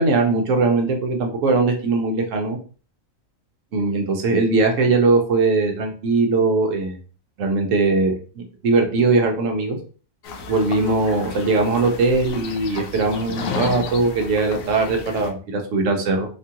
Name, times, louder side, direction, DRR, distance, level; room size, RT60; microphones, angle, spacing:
voice 1, 0.0-2.6 3.7-7.0 7.4-9.8 10.5-16.3, right 3 dB, 70° right, 3 dB, 1.0 m, -20 dB
sound 1, 10.2-15.3, left 4 dB, 80° left, 1.0 m, -32 dB
2.9 x 2.4 x 2.7 m, 0.38 s
omnidirectional pair, 1.4 m